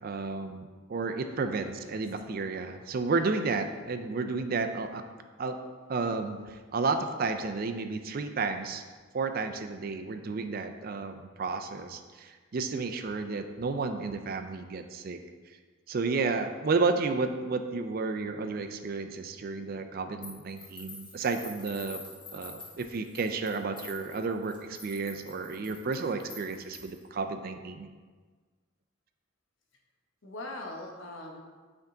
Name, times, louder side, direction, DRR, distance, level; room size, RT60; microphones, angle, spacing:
voice 1, 0.0-5.0 5.4-5.6 5.9-8.8 9.1-15.2 15.9-22.0 22.3-27.9, right 4 dB, 45° right, 7 dB, 0.4 m, -32 dB
voice 2, 1.7-2.0 30.2-31.4, left 2 dB, 70° left, 1 dB, 1.0 m, -41 dB
sound 1, 20.2-27.1, left 2 dB, 25° left, 1.1 m, -47 dB
8.2 x 3.5 x 3.8 m, 1.5 s
head